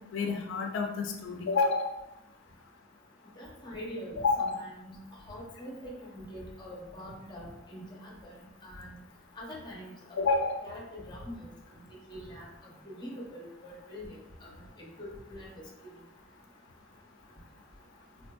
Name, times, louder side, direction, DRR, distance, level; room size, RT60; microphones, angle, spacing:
voice 1, 0.1-1.9 4.2-4.6 10.2-10.6, left 4 dB, 85° left, 2 dB, 0.4 m, -28 dB
voice 2, 3.4-5.0 5.3-8.3 8.6-9.0 9.4-10.2 10.6-11.3 12.1-12.5 12.9-14.2 15.0-15.5, equal, 25° left, -3 dB, 0.7 m, -43 dB
3.7 x 2.5 x 2.3 m, 0.90 s
head